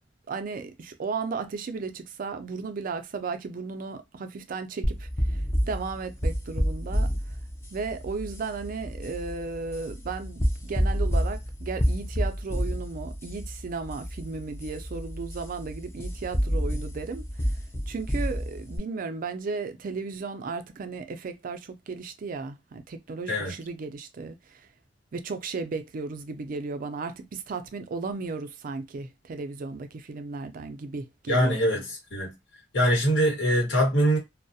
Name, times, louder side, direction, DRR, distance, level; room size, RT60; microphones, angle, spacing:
voice 1, 0.3-5.4 5.7-7.1 7.7-17.3 17.9-24.4 25.1-31.6, right 4 dB, 50° right, 0.4 m, -35 dB
sound 1, 4.8-18.8, equal, 15° left, 0.4 m, -29 dB
voice 2, 31.3-32.3 32.7-34.2, equal, 85° left, 1.2 m, -23 dB
2.3 x 2.0 x 2.6 m
head